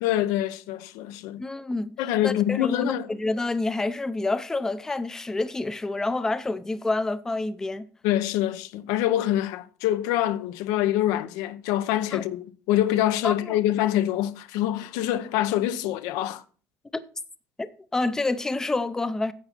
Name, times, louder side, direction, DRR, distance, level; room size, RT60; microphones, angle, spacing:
voice 1, 0.0-1.4 2.0-3.1 8.0-16.4, left 12 dB, 85° left, 0.7 m, -25 dB
voice 2, 1.4-1.9 2.2-7.8 12.1-12.2 13.2-13.6 17.6-19.3, left 2 dB, 10° left, 0.5 m, -28 dB
10.5 x 8.0 x 4.1 m
cardioid pair, 160°, 6 cm